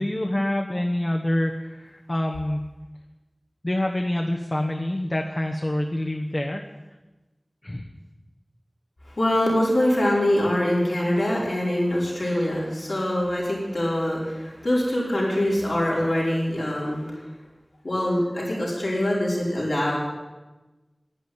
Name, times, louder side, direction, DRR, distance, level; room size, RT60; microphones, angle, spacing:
voice 1, 0.0-2.7 3.6-6.6 7.6-7.9, left 1 dB, 40° left, 1 dB, 1.1 m, -26 dB
voice 2, 9.2-17.0 17.8-20.0, left 1 dB, 80° left, -6 dB, 5.3 m, -24 dB
11.0 x 10.5 x 9.4 m, 1.2 s
wide cardioid pair, 45°, 0 cm